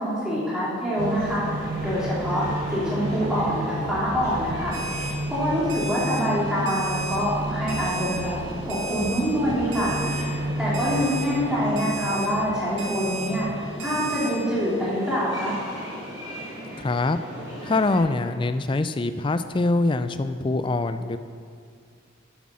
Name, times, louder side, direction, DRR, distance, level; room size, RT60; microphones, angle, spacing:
voice 1, 0.0-4.8 5.3-8.4 8.6-10.0 10.6-15.6, equal, 5° right, -9 dB, 3.0 m, -25 dB
sound 1, 0.9-18.0, equal, 20° right, 3.1 m, -38 dB
sound 2, 1.0-14.2, right 1 dB, 40° right, 0.5 m, -32 dB
Alarm, 4.7-5.1 5.7-6.2 6.7-7.2 7.7-8.2 8.7-9.2 9.7-10.2 10.7-11.3 11.8-12.3 12.8-13.3 13.8-14.3, right 4 dB, 65° right, 1.4 m, -34 dB
voice 2, 16.8-17.2 17.6-21.2, left 2 dB, 25° left, 11 dB, 0.3 m, -24 dB
9.2 x 8.2 x 6.3 m, 2.2 s
head